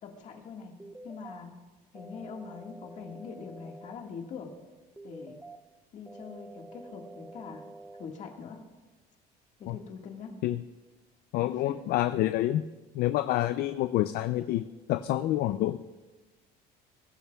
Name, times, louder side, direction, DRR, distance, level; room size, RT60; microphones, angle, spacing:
voice 1, 0.0-0.8 1.0-1.5 1.9-4.5 5.0-5.4 5.9-7.6 8.0-8.6 9.6-10.3 11.4-11.8, left 5 dB, 45° left, 2 dB, 1.7 m, -43 dB
sound 1, 0.8-1.4 1.9-3.9 5.0-5.6 6.1-8.1, right 1 dB, 5° right, 0.4 m, -48 dB
voice 2, 11.3-12.6 12.9-15.8, left 14 dB, 65° left, 11 dB, 0.4 m, -28 dB
21.0 x 11.0 x 2.3 m, 1.2 s
cardioid pair, 150°, 17 cm